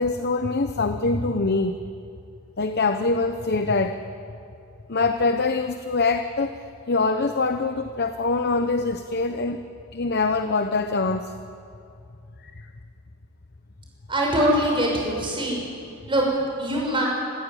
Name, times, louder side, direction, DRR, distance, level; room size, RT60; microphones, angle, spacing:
voice 1, 0.0-1.8 2.6-4.0 4.9-6.6 6.9-9.6 9.9-11.3 12.4-12.5, left 3 dB, 50° left, 8 dB, 0.9 m, -24 dB
voice 2, 14.1-15.6 16.1-16.3 16.6-17.1, equal, 25° right, -2 dB, 6.4 m, -23 dB
27.5 x 14.0 x 10.0 m, 2.5 s
head